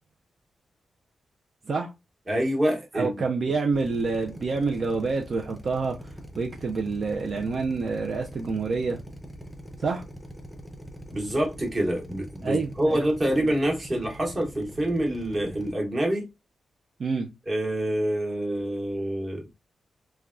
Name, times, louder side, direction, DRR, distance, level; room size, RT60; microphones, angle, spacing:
voice 1, 2.3-3.1 11.1-16.3 17.5-19.4, right 1 dB, 25° right, 1.0 m, -26 dB
voice 2, 2.9-9.0 9.8-10.0 12.4-13.0 13.4-13.5 17.0-17.3, right 4 dB, 55° right, 0.4 m, -28 dB
Drill, 3.7-15.7, equal, 5° left, 0.6 m, -43 dB
3.3 x 2.2 x 2.4 m
wide cardioid pair, 140°, 0 cm